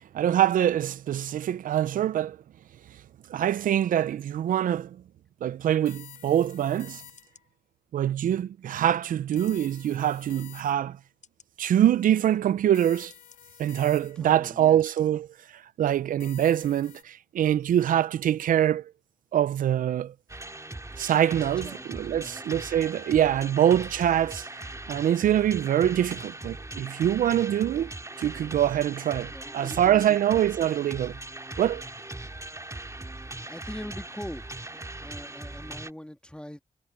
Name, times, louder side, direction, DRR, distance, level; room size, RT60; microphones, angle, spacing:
voice 1, 0.1-2.4 3.3-5.0 5.4-7.0 7.9-11.0 11.6-13.1 13.6-15.3 15.5-18.9 19.3-20.1 21.0-24.5 24.9-27.9 28.2-31.2 31.6-31.8, right 11 dB, 80° right, 0.5 m, -24 dB
sound 1, 5.9-7.5 9.4-11.0 12.7-14.4 16.2-17.0, left 10 dB, 90° left, 2.8 m, -49 dB
sound 2, 6.5-6.6 7.2-7.5 8.2-8.3 9.3-9.6 10.3-10.4 11.2-11.5 12.3-12.4 13.1-13.4 14.1-14.3 14.8-15.0 15.5-15.6, left 6 dB, 65° left, 7.8 m, -58 dB
voice 2, 14.2-14.8 21.6-21.8 22.1-22.4 23.1-23.2 29.3-30.4 33.5-34.4 34.7-36.6, left 1 dB, 5° left, 2.2 m, -42 dB
sound 3, 20.3-35.9, right 2 dB, 20° right, 2.3 m, -40 dB
supercardioid pair, 40°, 14 cm